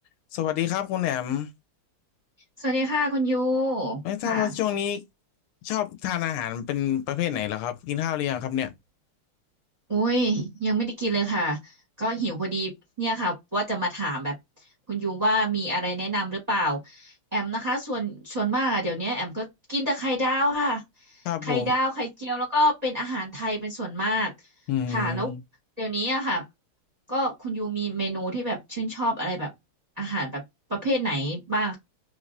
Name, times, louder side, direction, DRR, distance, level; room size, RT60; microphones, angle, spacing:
voice 1, 0.3-1.5 4.0-5.0 5.6-8.7 21.2-21.7 24.7-25.4, left 10 dB, 80° left, 1.4 m, -28 dB
voice 2, 2.6-4.5 9.9-14.3 14.9-20.8 21.1-24.3 24.9-25.3 25.8-26.4 27.1-29.5 30.0-30.4 30.7-31.7, right 1 dB, 25° right, 0.9 m, -27 dB
3.4 x 3.2 x 2.5 m
omnidirectional pair, 2.4 m